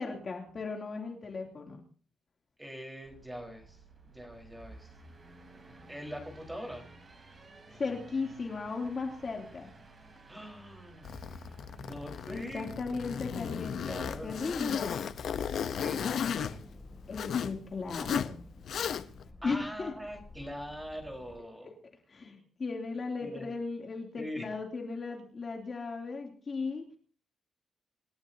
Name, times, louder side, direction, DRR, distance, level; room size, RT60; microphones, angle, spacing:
voice 1, 0.0-1.8 7.7-9.7 12.3-14.0 14.2-15.0 17.1-18.4 19.4-19.9 22.1-26.9, left 4 dB, 35° left, 1 dB, 2.9 m, -36 dB
voice 2, 2.6-3.8 4.0-4.9 5.9-6.9 10.3-11.1 11.8-12.8 13.8-15.0 15.7-16.6 19.4-21.7 23.2-23.5 24.2-24.5, equal, 10° right, 1 dB, 4.5 m, -43 dB
sound 1, 3.0-16.3, right 3 dB, 30° right, 5.9 m, -54 dB
Zipper (clothing), 11.0-17.5 17.9-18.3 18.6-19.3, left 7 dB, 65° left, 0.9 m, -35 dB
sound 2, 13.7-21.4, left 2 dB, 10° left, 2.7 m, -52 dB
27.5 x 14.0 x 2.8 m, 0.41 s
wide cardioid pair, 165°, 0 cm